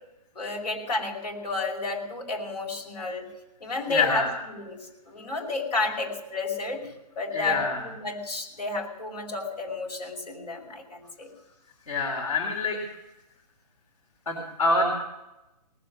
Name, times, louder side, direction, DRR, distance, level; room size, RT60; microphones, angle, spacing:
voice 1, 0.4-3.3 3.6-4.8 5.1-6.8 7.2-11.3, left 2 dB, 80° left, 1 dB, 5.4 m, -31 dB
voice 2, 3.9-4.3 7.3-7.8 11.9-12.8 14.3-14.9, left 3 dB, 60° left, 0 dB, 3.7 m, -25 dB
19.5 x 7.8 x 7.6 m, 0.96 s
hypercardioid pair, 165°, 21 cm